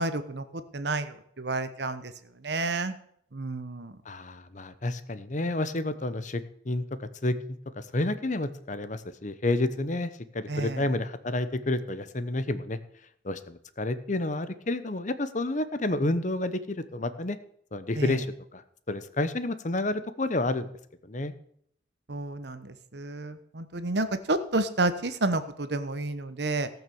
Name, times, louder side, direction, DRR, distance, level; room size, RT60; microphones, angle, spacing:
voice 1, 0.0-2.1 2.4-2.9 3.3-3.9 10.5-10.8 18.0-18.1 22.1-26.7, right 2 dB, 60° right, 11 dB, 1.1 m, -30 dB
voice 2, 4.0-12.8 13.2-17.4 17.7-18.3 18.5-18.6 18.9-20.7 21.0-21.3, left 2 dB, 40° left, 13 dB, 0.9 m, -30 dB
17.5 x 6.1 x 7.0 m, 0.68 s
head